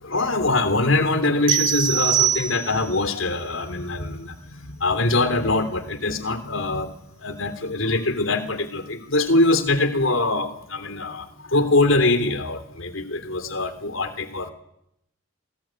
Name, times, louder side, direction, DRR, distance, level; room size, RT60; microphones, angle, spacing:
voice 1, 0.0-4.4 4.7-6.9 7.2-14.5, left 2 dB, 65° left, 10 dB, 3.3 m, -23 dB
sound 1, 1.5-3.0, right 10 dB, 60° right, 1.4 m, -22 dB
27.5 x 21.5 x 9.0 m, 0.79 s
head